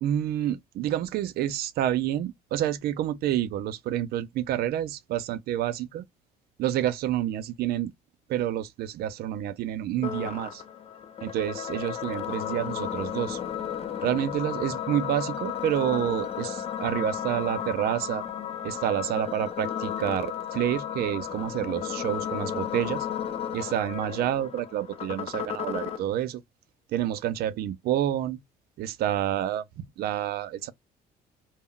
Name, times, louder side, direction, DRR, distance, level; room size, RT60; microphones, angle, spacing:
voice 1, 0.0-6.1 6.6-7.9 8.3-10.6 11.2-13.4 14.0-18.2 18.6-23.1 23.5-26.4 26.9-28.4 28.8-30.7, right 11 dB, 65° right, 0.4 m, -28 dB
sound 1, 10.0-26.0, left 9 dB, 35° left, 0.5 m, -34 dB
2.2 x 2.1 x 3.6 m
cardioid pair, 110°, 17 cm